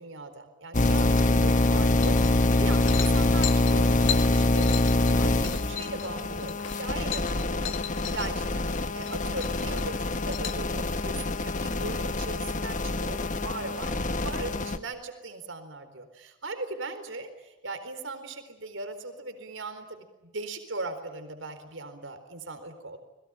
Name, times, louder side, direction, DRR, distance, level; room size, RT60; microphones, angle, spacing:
voice 1, 0.0-7.7 8.1-23.0, right 3 dB, 90° right, 8 dB, 4.1 m, -39 dB
sound 1, 0.7-14.8, left 2 dB, 40° left, 1.5 m, -25 dB
sound 2, 2.0-2.5 2.8-8.3 8.6-9.1 9.4-10.6, left 10 dB, 80° left, 2.2 m, -36 dB
29.5 x 22.0 x 8.9 m, 1.0 s
head